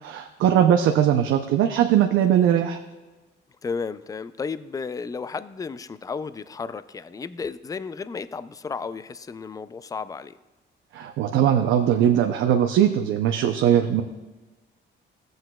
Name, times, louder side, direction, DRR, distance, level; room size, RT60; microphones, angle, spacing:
voice 1, 0.0-2.8 10.9-14.0, right 10 dB, 80° right, 5 dB, 0.6 m, -20 dB
voice 2, 3.6-10.3 13.7-13.9, left 5 dB, 20° left, 15 dB, 0.3 m, -33 dB
14.0 x 7.8 x 2.3 m, 1.2 s
cardioid pair, 90°, 20 cm